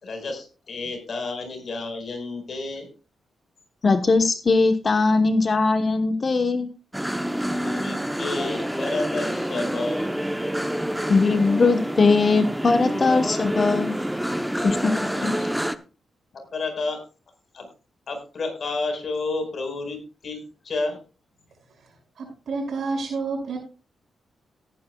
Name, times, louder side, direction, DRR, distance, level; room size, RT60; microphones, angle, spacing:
voice 1, 0.0-2.9 7.6-10.1 15.1-15.4 16.5-17.0 17.5-17.7 18.1-21.0, left 3 dB, 55° left, 4 dB, 4.8 m, -30 dB
voice 2, 3.8-6.7 11.1-14.0 14.6-15.3, left 3 dB, 40° left, 8 dB, 1.1 m, -20 dB
sound 1, 6.9-15.8, equal, 5° right, 0.8 m, -27 dB
voice 3, 21.7-23.6, right 4 dB, 70° right, 3 dB, 5.7 m, -30 dB
18.0 x 9.9 x 2.3 m, 0.33 s
cardioid pair, 75°, 0 cm